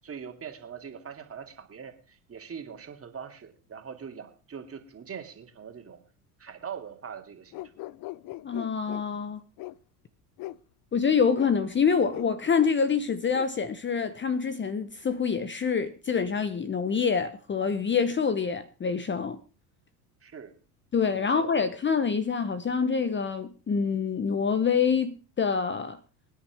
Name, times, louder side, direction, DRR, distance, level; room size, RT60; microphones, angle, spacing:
voice 1, 0.0-6.0 6.4-7.6 20.2-20.5 21.2-21.5, right 7 dB, 30° right, 2.5 m, -42 dB
sound 1, 7.5-9.0 9.6-9.8 10.4-10.6 11.3-11.5 12.1-12.3 12.6-12.8 13.3-13.5, left 17 dB, 45° left, 0.6 m, -40 dB
voice 2, 8.4-9.4 10.9-19.4 20.9-26.0, left 6 dB, 25° left, 1.0 m, -26 dB
23.0 x 9.9 x 3.5 m
hypercardioid pair, 75°, 48 cm